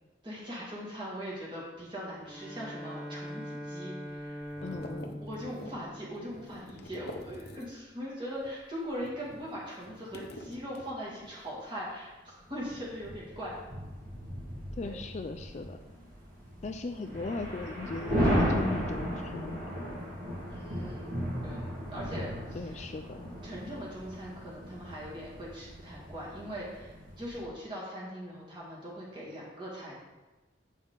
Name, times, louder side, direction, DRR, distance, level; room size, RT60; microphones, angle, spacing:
voice 1, 0.2-4.4 5.2-13.5 14.8-14.9 20.5-22.6 23.4-29.9, equal, 25° right, -6 dB, 2.3 m, -41 dB
Bowed string instrument, 2.2-6.8, equal, 5° right, 2.3 m, -42 dB
sound 1, 4.1-8.0 8.3-11.4, left 2 dB, 55° left, 0.8 m, -48 dB
voice 2, 4.6-5.2 14.7-15.8 16.6-19.7 22.5-23.3, left 3 dB, 35° left, 6 dB, 0.4 m, -38 dB
sound 2, 11.2-11.3 12.4-27.4, equal, 45° right, 2.0 m, -35 dB
8.4 x 5.5 x 3.9 m, 1.2 s
head